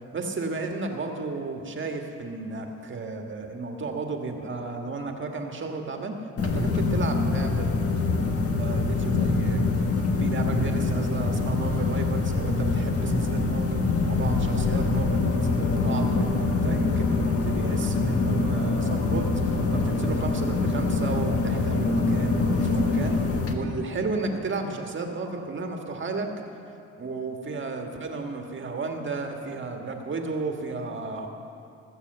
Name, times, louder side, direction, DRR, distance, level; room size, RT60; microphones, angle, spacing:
voice 1, 0.1-7.7 8.6-9.6 10.2-13.8 14.1-26.3 27.0-31.3, right 3 dB, 40° right, 3 dB, 1.6 m, -33 dB
sound 1, 6.4-23.5, left 3 dB, 50° left, 1.5 m, -24 dB
19.5 x 6.8 x 7.9 m, 2.7 s
cardioid pair, 90°, 30 cm